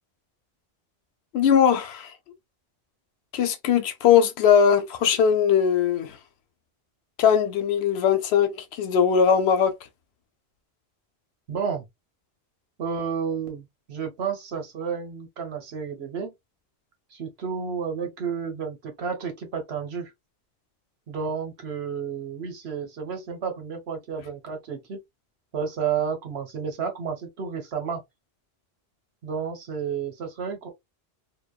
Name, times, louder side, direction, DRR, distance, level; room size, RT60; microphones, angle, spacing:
voice 1, 1.3-2.1 3.3-6.2 7.2-9.7, left 7 dB, 85° left, 0.8 m, -20 dB
voice 2, 11.5-11.8 12.8-16.3 17.1-20.1 21.1-25.0 25.5-28.0 29.2-30.7, right 6 dB, 90° right, 1.2 m, -31 dB
2.9 x 2.0 x 2.2 m
omnidirectional pair, 1.0 m